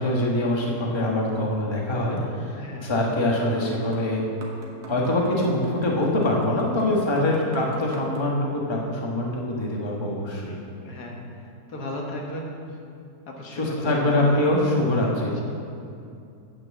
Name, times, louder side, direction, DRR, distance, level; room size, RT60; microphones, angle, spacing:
voice 1, 0.0-4.2 4.9-10.5 13.4-15.4, left 1 dB, 20° left, -3 dB, 1.2 m, -24 dB
voice 2, 2.5-2.9 7.5-7.6 10.8-11.2 11.7-12.8 13.3-14.6, left 1 dB, 80° left, -1 dB, 1.8 m, -35 dB
sound 1, 3.5-8.3, right 1 dB, 90° right, 1.8 m, -44 dB
8.8 x 6.1 x 7.2 m, 2.5 s
omnidirectional pair, 1.7 m